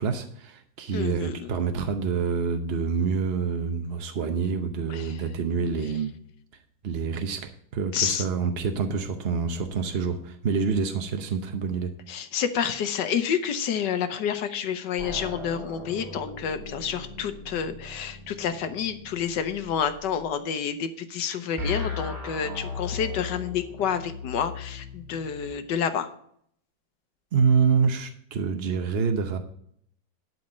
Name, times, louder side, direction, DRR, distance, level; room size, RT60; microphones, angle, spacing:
voice 1, 0.0-6.1 6.8-11.9 27.3-29.4, right 5 dB, 60° right, 6 dB, 0.6 m, -27 dB
voice 2, 0.9-1.5 4.9-5.2 7.9-8.3 12.1-26.1, left 8 dB, 70° left, 9 dB, 1.4 m, -29 dB
sound 1, 15.0-20.3 21.6-25.5, left 3 dB, 20° right, 4.7 m, -38 dB
12.0 x 4.2 x 7.4 m, 0.67 s
omnidirectional pair, 2.1 m